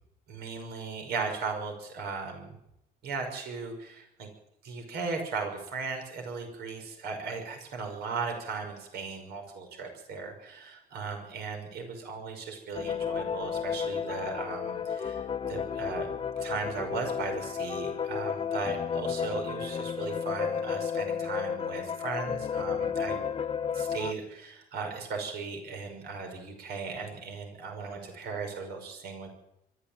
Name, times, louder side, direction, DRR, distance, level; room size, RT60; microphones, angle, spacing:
voice 1, 0.3-2.6 3.0-4.3 4.6-16.1 16.4-23.5 23.7-29.3, right 4 dB, 75° right, 4 dB, 5.8 m, -37 dB
sound 1, 12.7-24.1, left 7 dB, 30° left, 0.9 m, -32 dB
23.5 x 14.0 x 9.0 m, 0.79 s
cardioid pair, 110°, 17 cm